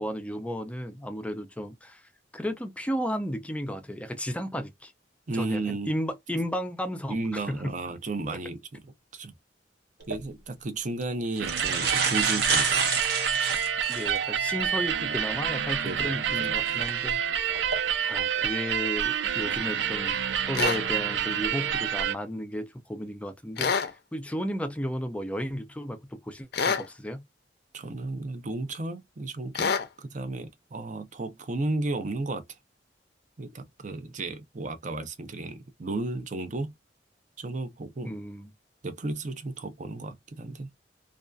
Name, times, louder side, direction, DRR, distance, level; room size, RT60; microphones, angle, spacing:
voice 1, 0.0-2.0 2.3-4.9 5.3-7.2 7.5-7.8 13.9-17.2 17.7-17.8 18.1-20.2 20.5-23.7 24.1-27.2 38.0-38.5, equal, 5° left, 0.4 m, -33 dB
voice 2, 5.3-5.9 7.1-8.8 9.1-9.3 10.1-12.9 13.4-13.6 15.8-16.6 27.7-32.5 33.4-36.7 37.4-38.1 38.8-40.7, right 2 dB, 45° right, 0.6 m, -34 dB
sound 1, 10.0-10.2 11.0-11.1 11.4-14.2 14.7-14.8 16.7-16.9 17.5-17.8, right 5 dB, 65° right, 0.9 m, -28 dB
sound 2, 11.4-22.1, right 8 dB, 85° right, 0.4 m, -28 dB
sound 3, 20.5-20.8 23.6-23.9 26.5-26.9 29.6-29.9, left 5 dB, 65° left, 0.5 m, -26 dB
2.5 x 2.3 x 2.2 m
head